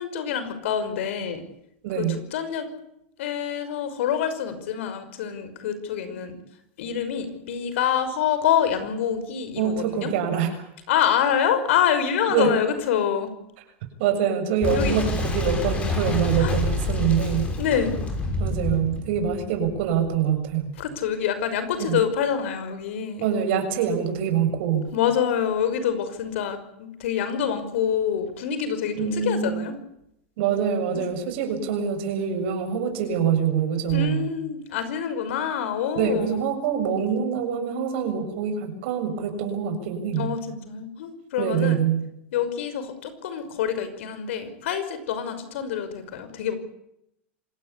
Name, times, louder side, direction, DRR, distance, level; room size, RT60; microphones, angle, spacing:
voice 1, 0.0-1.4 2.0-2.7 3.2-6.4 6.8-10.1 10.9-13.3 14.7-15.0 16.4-16.5 17.6-17.9 20.8-23.3 24.9-29.8 30.9-31.0 33.9-36.4 40.2-41.8 42.3-46.5, left 8 dB, 75° left, 10 dB, 5.7 m, -26 dB
voice 2, 1.8-2.2 9.6-10.5 12.3-12.5 14.0-17.5 18.4-20.7 21.8-22.0 23.2-24.9 29.0-29.6 30.4-34.3 35.9-40.3 41.4-42.0, right 8 dB, 60° right, 6 dB, 7.1 m, -25 dB
Boom, 14.6-20.2, left 2 dB, 20° left, 5.7 m, -28 dB
26.5 x 18.0 x 8.4 m, 0.79 s
supercardioid pair, 145°, 7 cm